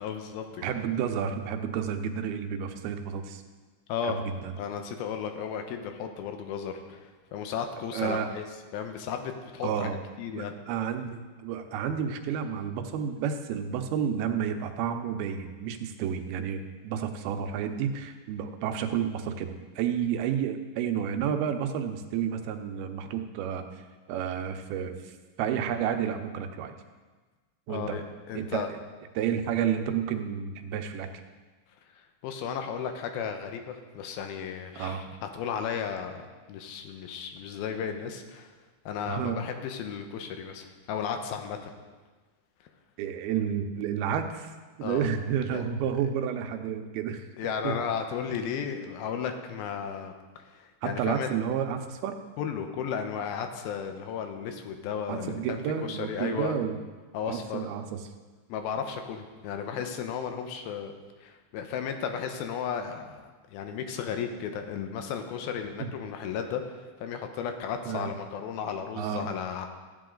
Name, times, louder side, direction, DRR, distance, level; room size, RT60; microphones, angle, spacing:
voice 1, 0.0-0.6 3.9-4.2 4.6-8.5 8.7-9.9 10.2-10.5 27.7-28.7 32.2-36.1 36.5-38.5 38.9-41.7 44.8-45.1 45.5-45.7 47.4-50.1 50.5-51.3 52.4-56.5 57.1-57.7 58.5-60.9 61.2-69.7, left 7 dB, 90° left, 6 dB, 2.7 m, -34 dB
voice 2, 0.6-3.4 4.0-4.6 7.9-8.3 9.6-10.0 10.3-23.6 24.1-26.8 27.7-28.0 28.4-28.8 29.2-31.1 34.8-35.1 39.1-39.4 43.0-44.5 44.8-47.2 47.6-47.8 50.8-52.2 55.1-56.8 57.2-58.0 65.8-65.9 67.9-68.1 69.0-69.3, right 8 dB, 85° right, 6 dB, 2.7 m, -31 dB
14.5 x 8.6 x 3.8 m, 1.3 s
omnidirectional pair, 4.3 m